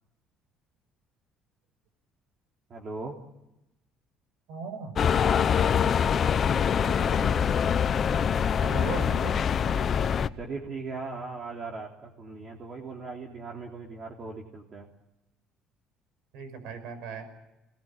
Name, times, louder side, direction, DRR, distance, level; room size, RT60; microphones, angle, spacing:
voice 1, 2.7-3.2 6.7-7.6 10.4-14.9, right 3 dB, 35° right, 0 dB, 3.3 m, -39 dB
voice 2, 4.5-5.0 8.6-9.4 16.3-17.3, right 4 dB, 85° right, 10 dB, 5.6 m, -37 dB
sound 1, 5.0-10.3, left 7 dB, 35° left, 0.8 m, -24 dB
27.0 x 19.5 x 8.7 m, 0.95 s
cardioid pair, 140°, 0 cm